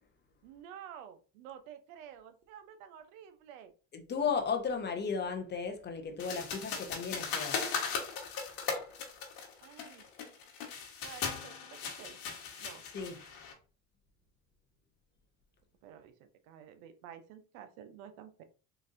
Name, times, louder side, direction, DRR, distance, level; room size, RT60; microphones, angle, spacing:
voice 1, 0.4-3.7 9.6-10.1 11.0-12.2 12.6-12.8 15.8-18.4, right 9 dB, 90° right, 0.6 m, -51 dB
voice 2, 3.9-7.6 12.9-13.2, left 5 dB, 25° left, 0.6 m, -35 dB
sound 1, 6.2-13.5, left 6 dB, 60° left, 1.3 m, -38 dB
3.9 x 2.6 x 2.5 m
supercardioid pair, 105°, 40 cm